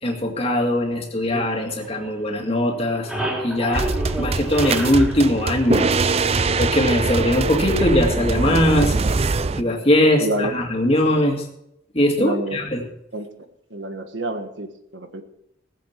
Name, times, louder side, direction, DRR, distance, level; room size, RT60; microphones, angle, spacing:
voice 1, 0.0-3.1 3.4-5.9 6.6-8.9 9.5-11.5 11.9-12.8, left 1 dB, 30° left, 2 dB, 2.2 m, -20 dB
sound 1, 1.3-2.4 2.7-6.4, right 1 dB, 5° right, 3.3 m, -31 dB
sound 2, 3.7-9.6, right 3 dB, 35° right, 0.5 m, -22 dB
voice 2, 10.2-10.5 12.2-12.6 13.1-13.3 13.7-15.2, right 1 dB, 75° right, 7 dB, 1.5 m, -28 dB
18.5 x 7.7 x 6.0 m, 0.80 s
head